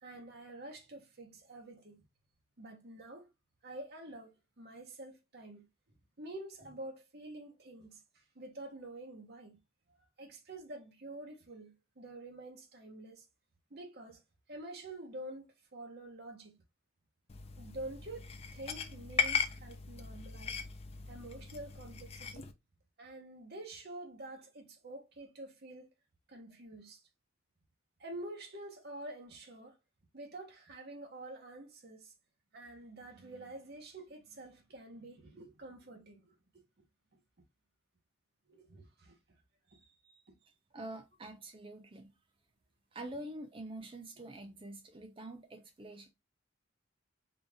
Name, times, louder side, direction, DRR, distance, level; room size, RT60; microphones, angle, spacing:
voice 1, 0.0-2.0 2.6-3.3 3.6-5.7 6.2-9.6 10.2-13.3 13.7-14.2 14.5-16.6 17.6-20.6 21.1-22.5 23.0-25.9 26.3-27.0 28.0-29.8 30.1-32.1 32.5-36.6 37.1-37.2 38.5-39.2 39.7-40.3, right 1 dB, 50° right, 1.0 m, -48 dB
sound 1, 17.3-22.5, left 6 dB, 30° left, 0.4 m, -38 dB
voice 2, 40.7-42.1 42.9-46.1, right 1 dB, 25° right, 0.5 m, -46 dB
3.9 x 2.5 x 3.3 m
head